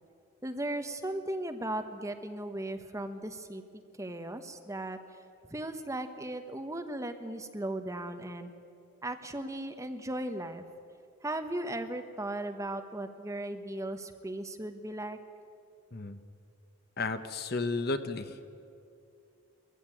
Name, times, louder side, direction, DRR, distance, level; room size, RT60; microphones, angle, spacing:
voice 1, 0.4-3.6 4.0-5.0 5.5-8.5 9.0-10.6 11.2-15.2, right 1 dB, 15° right, 7 dB, 1.0 m, -37 dB
voice 2, 17.0-18.4, left 3 dB, 50° left, 10 dB, 1.0 m, -33 dB
21.0 x 15.0 x 9.0 m, 2.4 s
head